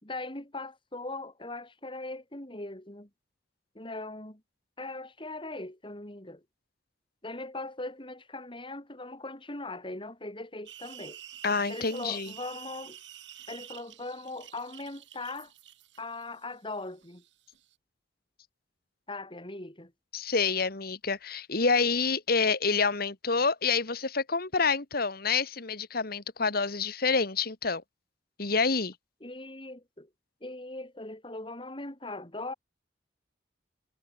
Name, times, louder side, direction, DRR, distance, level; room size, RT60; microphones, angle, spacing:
voice 1, 0.0-3.1 3.7-4.4 4.8-6.4 7.2-11.2 11.7-13.0 13.5-15.5 16.0-17.2 19.1-19.9 29.2-30.1 30.4-32.5, left 2 dB, 30° left, 4.4 m, -40 dB
sound 1, 10.7-17.7, right 11 dB, 80° right, 4.5 m, -48 dB
voice 2, 11.4-12.3 20.1-27.8 28.4-28.9, left 4 dB, 55° left, 1.9 m, -27 dB
head